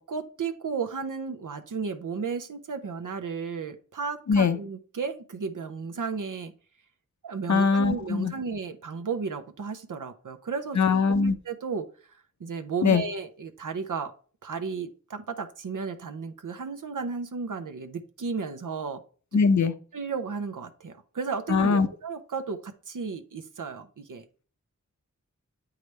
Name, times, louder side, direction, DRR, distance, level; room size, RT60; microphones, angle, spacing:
voice 1, 0.0-6.5 7.2-14.1 14.4-19.0 19.3-19.4 19.9-24.2, right 5 dB, 85° right, 8 dB, 0.7 m, -34 dB
voice 2, 7.5-8.3 10.8-11.3 12.8-13.0 19.3-19.7 21.5-21.9, left 5 dB, 65° left, 11 dB, 0.7 m, -21 dB
8.1 x 4.8 x 3.2 m, 0.40 s
wide cardioid pair, 65°, 31 cm